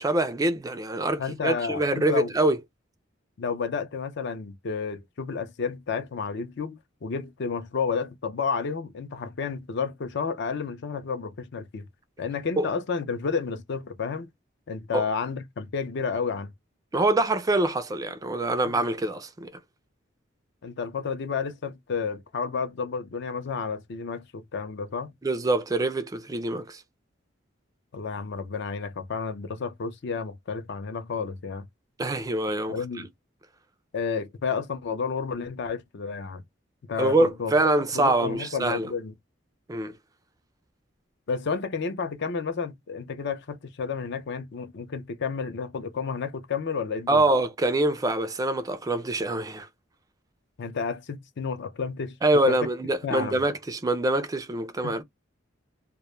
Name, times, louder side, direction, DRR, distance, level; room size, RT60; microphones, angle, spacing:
voice 1, 0.0-2.6 12.6-12.7 14.9-15.0 16.9-19.5 25.2-26.8 32.0-33.1 37.0-38.9 39.7-40.0 47.1-49.7 52.2-55.0, right 2 dB, 20° right, 0.3 m, -25 dB
voice 2, 1.2-2.3 3.4-11.9 12.2-14.3 14.7-16.5 18.7-18.8 20.6-25.1 27.9-31.7 32.7-33.1 33.9-36.4 36.9-37.5 37.9-39.1 41.3-47.2 50.6-52.2 52.5-52.6 53.0-53.4 54.8-55.0, left 5 dB, 60° left, 0.5 m, -31 dB
2.1 x 2.0 x 3.0 m
head